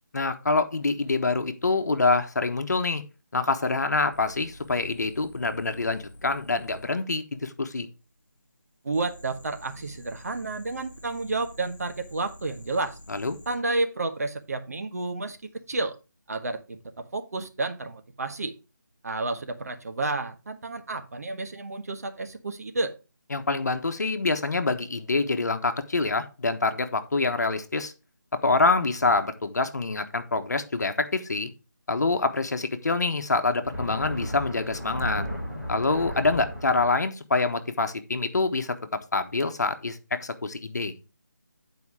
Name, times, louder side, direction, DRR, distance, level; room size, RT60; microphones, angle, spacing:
voice 1, 0.1-3.0 3.3-7.9 13.1-13.4 23.3-27.9 28.4-31.5 31.9-35.3 35.7-38.8 39.1-40.9, left 3 dB, 60° left, 8 dB, 1.3 m, -26 dB
sound 1, 4.1-6.9 8.9-13.6 15.2-15.6, left 1 dB, 40° left, 3.9 m, -48 dB
voice 2, 8.8-13.0 13.5-15.4 15.7-15.9 16.3-18.5 19.0-22.9, right 3 dB, 50° right, 7 dB, 1.3 m, -31 dB
sound 2, 33.5-36.9, equal, 5° right, 3.2 m, -34 dB
9.6 x 4.8 x 4.8 m, 0.30 s
figure-of-eight pair, 165°, 10 cm